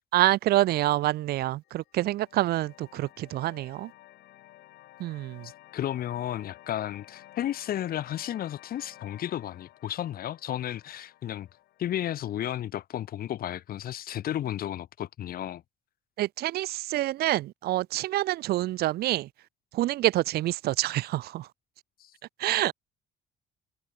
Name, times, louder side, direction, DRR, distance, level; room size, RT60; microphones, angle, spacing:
voice 1, 0.1-3.9 5.0-5.5 16.2-19.3 19.7-21.5 22.4-22.7, right 15 dB, 70° right, 0.8 m, -27 dB
sound 1, 1.6-12.7, left 16 dB, 80° left, 4.0 m, -53 dB
voice 2, 5.4-11.5 11.8-15.6 22.0-22.1, left 11 dB, 60° left, 3.5 m, -33 dB
cardioid pair, 110°, 17 cm